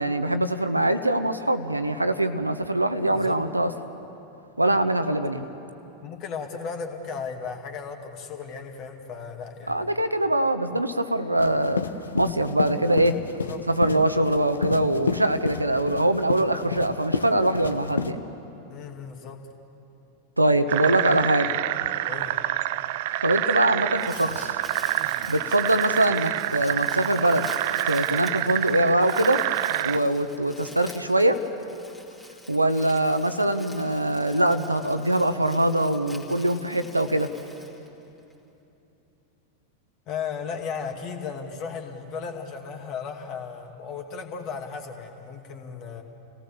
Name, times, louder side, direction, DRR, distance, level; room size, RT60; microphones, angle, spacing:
voice 1, 0.0-3.7 4.6-5.4 9.7-11.8 12.1-13.2 13.7-18.2 20.4-21.5 23.2-24.6 25.3-27.5 27.8-29.4 29.8-31.4 32.5-37.3, right 1 dB, 85° right, 10 dB, 1.0 m, -23 dB
voice 2, 6.0-10.0 13.4-13.6 13.9-14.0 15.5-15.6 16.6-16.7 18.7-19.4 22.1-22.4 40.1-46.0, left 6 dB, 35° left, 4 dB, 2.4 m, -35 dB
sound 1, 11.4-18.1, left 5 dB, 75° left, 0.9 m, -30 dB
sound 2, 20.7-30.0, right 15 dB, 50° right, 0.4 m, -27 dB
Crumpling crinkling, 23.7-38.3, left 1 dB, 5° left, 2.6 m, -47 dB
29.0 x 17.5 x 7.2 m, 2.9 s
figure-of-eight pair, 90°, 0 cm